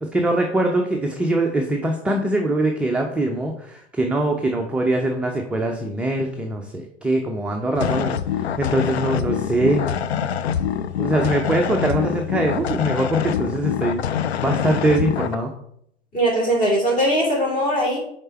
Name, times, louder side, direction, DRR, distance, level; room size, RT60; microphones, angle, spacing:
voice 1, 0.0-9.8 11.0-14.0 14.4-15.5, right 1 dB, 5° right, 2 dB, 0.4 m, -22 dB
sound 1, 7.7-15.3, left 9 dB, 70° left, 0.5 m, -25 dB
voice 2, 16.1-18.0, equal, 25° left, -2 dB, 2.6 m, -20 dB
6.6 x 4.2 x 4.3 m, 0.70 s
figure-of-eight pair, 90°, 33 cm